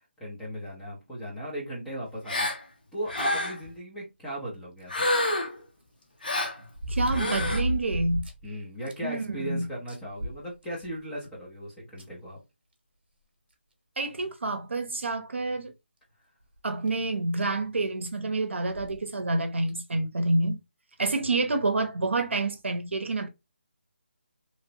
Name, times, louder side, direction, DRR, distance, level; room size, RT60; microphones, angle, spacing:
voice 1, 0.2-2.5 2.9-5.1 8.4-12.4, equal, 5° left, 0.5 m, -37 dB
Gasp, 2.3-2.6 3.1-3.7 4.9-5.6 6.2-6.6 7.1-7.6, left 1 dB, 45° left, 0.7 m, -28 dB
sound 1, 4.8-4.9 6.7-8.5 8.9-9.0 9.4-9.5 9.9-11.0 12.0-12.1 13.5-13.6 14.2-14.3 15.0-15.2 16.6-16.7 16.9-17.0 18.7-19.0 19.7-19.8, equal, 55° right, 0.9 m, -32 dB
voice 2, 6.9-8.3 9.0-9.7 14.0-15.7 16.6-20.6 21.0-23.3, right 2 dB, 75° right, 0.6 m, -28 dB
2.8 x 2.0 x 2.6 m
figure-of-eight pair, 175°, 6 cm